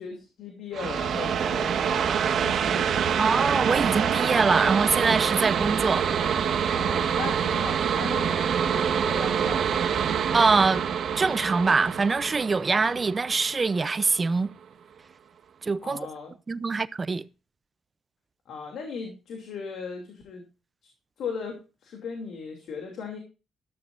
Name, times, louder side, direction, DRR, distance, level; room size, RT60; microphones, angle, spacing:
voice 1, 0.0-3.0 6.7-9.9 15.8-16.3 18.5-20.5 21.2-23.2, left 5 dB, 70° left, 2.8 m, -37 dB
sound 1, 0.7-14.1, right 7 dB, 65° right, 1.3 m, -26 dB
voice 2, 3.2-6.1 10.3-10.8 11.2-14.5 15.6-16.0 16.5-17.2, right 4 dB, 30° right, 0.6 m, -24 dB
13.0 x 13.0 x 2.6 m
cardioid pair, 90°, 0 cm